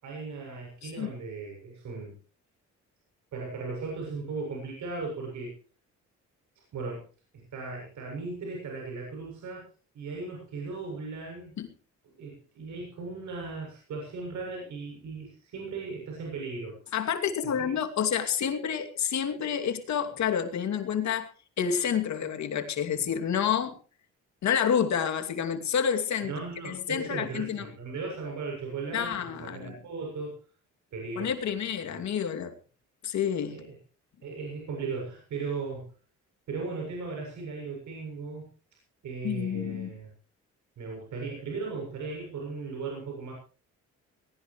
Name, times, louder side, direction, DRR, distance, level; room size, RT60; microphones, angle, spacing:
voice 1, 0.0-2.2 3.3-5.5 6.7-7.0 7.3-9.6 9.9-11.5 12.1-16.8 17.4-17.8 26.2-30.3 30.9-31.3 31.9-32.0 33.5-33.7 34.2-35.9 36.5-38.5 39.0-40.1 40.8-43.3, right 4 dB, 70° right, 0 dB, 7.5 m, -37 dB
voice 2, 16.9-21.3 21.6-23.8 24.4-26.3 26.6-27.7 28.9-29.8 31.2-32.5 33.0-33.6 39.2-39.9, left 8 dB, 65° left, 5 dB, 2.7 m, -29 dB
20.0 x 18.0 x 3.2 m, 0.38 s
cardioid pair, 90°, 30 cm